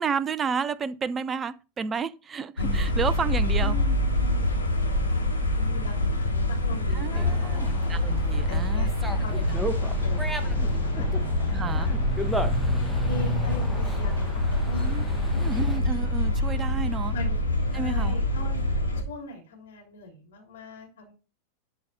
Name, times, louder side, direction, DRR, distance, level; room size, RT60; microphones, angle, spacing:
voice 1, 0.0-3.8 6.9-8.9 9.3-9.6 11.5-11.9 14.8-15.0 15.4-17.1 17.7-18.2, right 6 dB, 20° right, 0.6 m, -31 dB
sound 1, 2.6-19.0, left 1 dB, 80° left, 2.3 m, -25 dB
voice 2, 3.6-8.0 8.5-8.9 9.2-12.0 13.0-15.0 15.3-15.4 17.1-17.4 17.7-18.6 19.0-21.1, left 1 dB, 60° left, 3.2 m, -41 dB
Dog, 7.1-15.8, equal, 5° right, 1.2 m, -35 dB
11.5 x 4.8 x 5.3 m
figure-of-eight pair, 90°, 0 cm